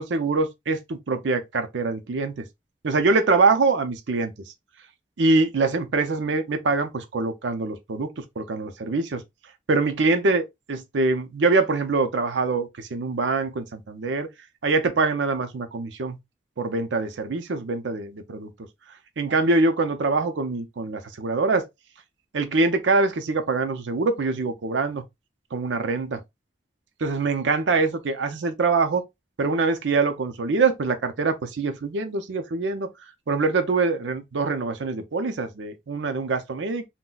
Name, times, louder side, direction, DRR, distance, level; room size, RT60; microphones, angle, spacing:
voice 1, 0.0-2.5 2.8-4.3 5.2-9.2 9.7-14.3 14.6-16.2 16.6-18.5 19.2-21.7 22.3-25.0 25.5-26.2 27.0-29.0 29.4-32.9 33.3-36.9, right 3 dB, 85° right, 0.5 m, -24 dB
3.9 x 2.2 x 2.3 m
head